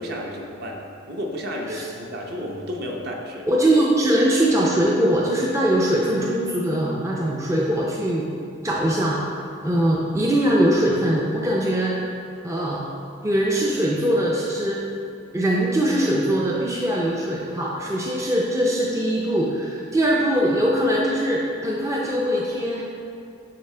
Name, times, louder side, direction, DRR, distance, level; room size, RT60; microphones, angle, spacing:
voice 1, 0.0-3.5, equal, 50° right, 0 dB, 0.7 m, -32 dB
voice 2, 3.5-8.3 8.6-9.2 9.6-11.9 12.4-12.8 13.2-14.8 15.3-22.8, right 1 dB, 15° right, -4 dB, 0.4 m, -21 dB
9.4 x 3.6 x 3.3 m, 2.5 s
head